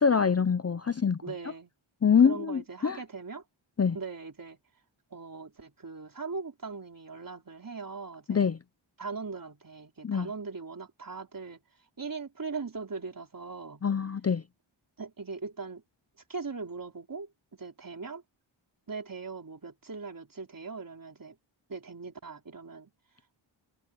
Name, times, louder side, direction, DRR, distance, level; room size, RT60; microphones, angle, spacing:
voice 1, 0.0-1.2 2.0-3.0 3.8-4.0 8.3-8.6 10.0-10.3 13.8-14.4, left 6 dB, 30° left, 0.5 m, -24 dB
voice 2, 1.2-1.7 2.2-3.4 3.9-4.6 5.1-8.5 9.0-11.6 12.0-13.8 15.0-15.8 16.3-18.2 18.9-21.4 21.7-22.9, right 4 dB, 40° right, 4.2 m, -40 dB
wide cardioid pair, 115°, 49 cm